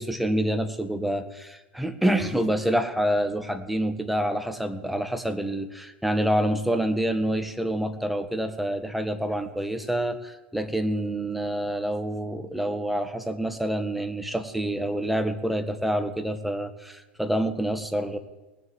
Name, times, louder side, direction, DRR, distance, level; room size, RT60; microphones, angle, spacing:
voice 1, 0.0-18.2, right 1 dB, ahead, 7 dB, 1.7 m, -27 dB
19.0 x 7.6 x 9.1 m, 1.1 s
hypercardioid pair, 90°, 6 cm